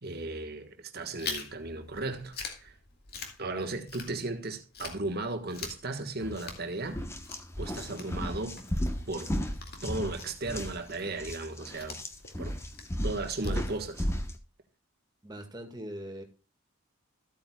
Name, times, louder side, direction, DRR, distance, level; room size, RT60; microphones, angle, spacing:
voice 1, 0.0-2.7 3.4-7.0 7.6-8.6 9.1-9.3 9.8-12.0 12.4-12.6 13.0-14.1, right 2 dB, 45° right, 1.5 m, -35 dB
Chewing mastication, 1.2-4.4 4.7-14.2, left 4 dB, 45° left, 2.2 m, -44 dB
sound 1, 6.2-6.4 6.8-14.4, equal, 10° left, 1.0 m, -35 dB
voice 2, 15.2-16.2, equal, 20° right, 1.8 m, -41 dB
14.0 x 8.8 x 2.3 m
head